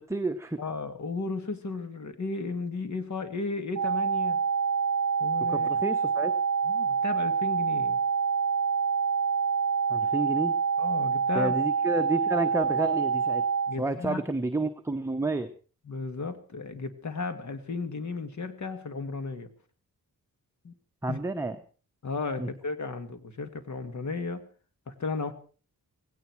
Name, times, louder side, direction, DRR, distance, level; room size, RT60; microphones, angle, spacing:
voice 1, 0.0-0.6 5.5-6.3 9.9-10.5 11.3-13.4 13.8-15.5 21.0-21.6 22.4-22.5, right 2 dB, 10° right, 7 dB, 1.0 m, -30 dB
voice 2, 0.6-4.4 5.2-5.7 6.6-8.0 10.8-11.5 13.7-14.2 15.9-19.5 20.6-20.7 21.1-21.2 22.0-24.5 24.9-25.3, left 4 dB, 55° left, 9 dB, 2.1 m, -34 dB
sound 1, 3.8-13.8, right 6 dB, 45° right, 0.8 m, -26 dB
18.0 x 17.0 x 4.6 m, 0.39 s
wide cardioid pair, 125°, 34 cm